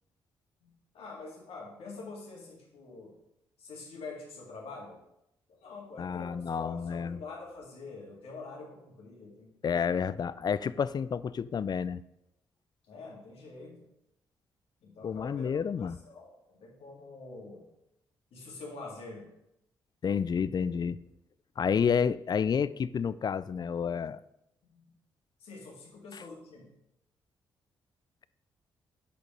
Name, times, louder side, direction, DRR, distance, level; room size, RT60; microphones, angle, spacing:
voice 1, 0.6-3.1 3.6-5.0 5.5-9.8 12.9-13.9 14.8-15.5 15.8-17.7 18.3-19.3 21.6-21.8 24.7-24.9 25.4-26.7, left 3 dB, 65° left, -1 dB, 2.1 m, -46 dB
voice 2, 6.0-7.2 9.6-12.0 15.0-16.0 20.0-21.0 21.6-24.2 26.1-26.2, left 7 dB, 40° left, 17 dB, 0.4 m, -30 dB
6.7 x 5.2 x 5.2 m, 0.84 s
hypercardioid pair, 40°, 11 cm